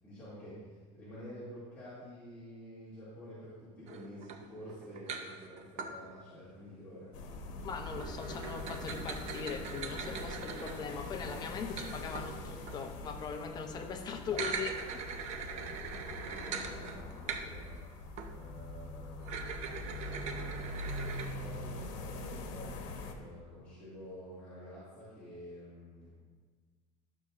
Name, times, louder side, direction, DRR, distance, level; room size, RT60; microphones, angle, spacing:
voice 1, 0.0-7.2 15.4-26.1, equal, 10° left, -13 dB, 2.5 m, -50 dB
sound 1, 3.9-6.0 7.9-12.9 14.2-17.8 18.2-18.3 19.2-21.3, right 6 dB, 45° right, 0.7 m, -42 dB
sound 2, 7.1-23.1, left 2 dB, 85° left, 1.1 m, -43 dB
voice 2, 7.6-15.2, left 5 dB, 25° left, 4 dB, 0.7 m, -40 dB
12.5 x 6.9 x 2.6 m, 1.5 s
cardioid pair, 160°, 16 cm